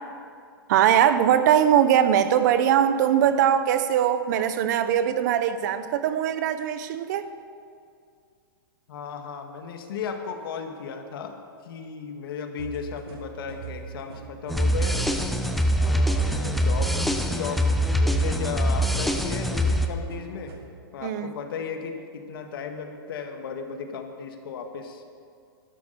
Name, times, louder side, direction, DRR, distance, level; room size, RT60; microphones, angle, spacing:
voice 1, 0.7-7.3 21.0-21.3, right 9 dB, 50° right, 11 dB, 0.8 m, -21 dB
voice 2, 8.9-11.4 11.6-15.1 15.8-17.0 17.3-20.5 20.9-25.0, left 6 dB, 70° left, 5 dB, 1.8 m, -35 dB
sound 1, 12.6-20.6, right 6 dB, 90° right, 2.7 m, -40 dB
sound 2, 14.5-19.9, equal, ahead, 0.6 m, -23 dB
12.5 x 11.5 x 6.8 m, 2.3 s
hypercardioid pair, 155°, 12 cm